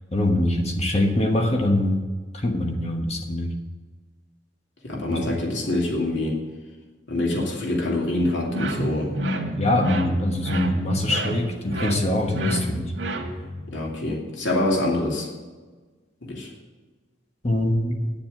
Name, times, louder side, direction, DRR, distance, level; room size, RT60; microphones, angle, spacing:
voice 1, 0.1-2.0 2.3-3.5 5.1-5.3 9.6-12.9 17.4-18.0, left 1 dB, 35° left, 3 dB, 1.3 m, -23 dB
voice 2, 4.8-6.4 7.1-9.1 13.7-15.3 16.2-16.5, left 1 dB, 85° left, -2 dB, 2.5 m, -25 dB
sound 1, 8.5-13.6, right 1 dB, 90° right, 1.9 m, -29 dB
9.9 x 7.3 x 7.8 m, 1.4 s
head